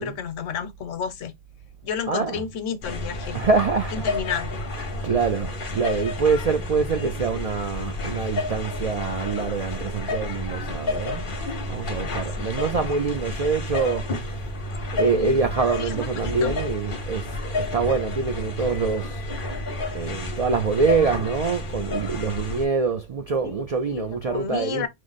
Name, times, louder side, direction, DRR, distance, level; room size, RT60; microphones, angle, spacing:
voice 1, 0.0-1.3 1.8-3.4 3.9-4.6 12.4-12.6 15.1-15.4 15.8-16.1 16.4-16.5 23.4-23.6 23.9-24.9, left 7 dB, 80° left, 1.1 m, -31 dB
voice 2, 2.1-2.5 3.3-4.1 5.0-11.3 11.7-14.5 14.9-19.3 19.9-24.9, right 4 dB, 80° right, 0.3 m, -25 dB
sound 1, 2.8-22.7, left 2 dB, 45° left, 1.1 m, -30 dB
4.8 x 2.0 x 3.9 m
omnidirectional pair, 1.3 m